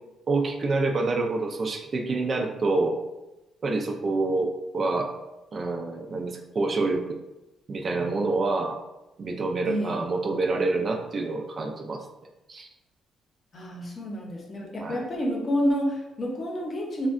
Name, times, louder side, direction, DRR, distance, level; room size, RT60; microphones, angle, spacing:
voice 1, 0.3-3.0 3.6-5.1 5.5-7.2 7.7-8.8 9.2-12.0 12.5-12.7 14.8-15.0, right 3 dB, 45° right, 2 dB, 0.4 m, -27 dB
voice 2, 9.6-10.0 13.5-17.1, equal, 40° left, 0 dB, 0.7 m, -29 dB
3.4 x 2.2 x 2.4 m, 0.97 s
cardioid pair, 90°, 0 cm